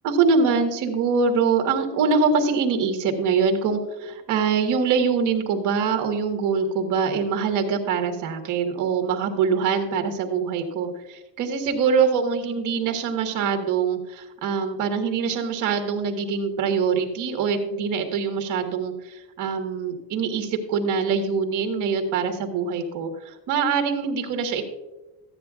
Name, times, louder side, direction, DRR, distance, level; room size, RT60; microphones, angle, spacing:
voice 1, 0.0-24.6, right 5 dB, 45° right, 4 dB, 1.6 m, -24 dB
14.5 x 9.9 x 2.4 m, 1.1 s
cardioid pair, 175°, 42 cm